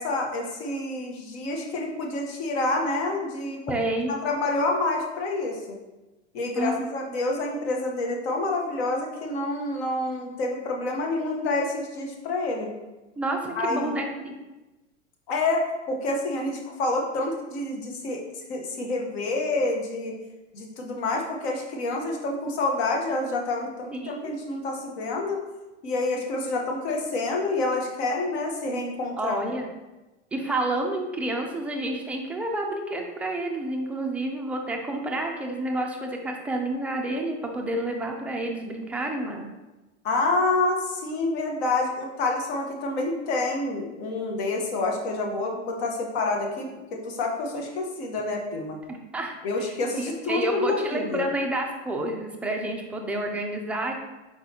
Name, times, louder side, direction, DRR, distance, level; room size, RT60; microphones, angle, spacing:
voice 1, 0.0-3.6 4.2-5.8 6.3-12.7 13.5-14.0 15.3-18.2 18.5-20.1 20.5-25.4 25.8-29.4 40.0-48.8 49.4-51.3, left 2 dB, 60° left, 1 dB, 1.2 m, -28 dB
voice 2, 3.7-4.1 6.6-6.9 13.2-14.3 24.0-24.3 29.2-29.7 30.3-39.5 48.9-49.3 49.9-53.9, right 1 dB, 5° right, 1 dB, 0.3 m, -29 dB
4.7 x 3.9 x 2.8 m, 1.1 s
hypercardioid pair, 115°, 35 cm